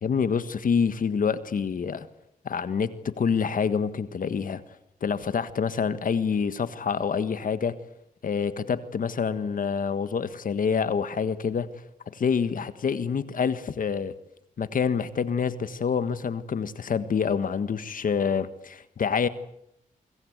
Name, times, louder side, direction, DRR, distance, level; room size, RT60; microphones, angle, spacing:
voice 1, 0.0-2.1 2.4-4.6 5.0-7.8 8.2-11.7 12.1-14.1 14.6-19.3, left 6 dB, 70° left, 12 dB, 1.6 m, -27 dB
25.0 x 23.0 x 8.1 m, 0.75 s
cardioid pair, 70°, 15 cm